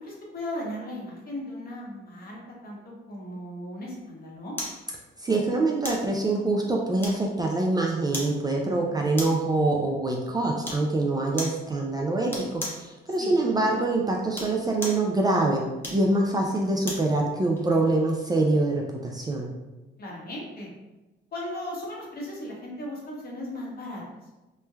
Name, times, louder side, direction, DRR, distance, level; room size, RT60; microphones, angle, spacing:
voice 1, 0.0-4.5 13.2-13.3 20.0-20.7 21.3-24.0, left 1 dB, 50° left, -3 dB, 0.9 m, -37 dB
sound 1, 4.6-4.8 5.8-6.1 7.0-7.5 8.1-8.4 9.2-9.5 10.6-10.9 11.4-11.6 12.3-12.9 14.2-15.1 15.8-17.1 17.6-17.7, left 1 dB, 10° left, 0.7 m, -35 dB
voice 2, 5.2-15.6 15.9-19.5, right 2 dB, 20° right, -1 dB, 0.4 m, -25 dB
3.1 x 2.1 x 2.2 m, 1.1 s
cardioid pair, 90°, 20 cm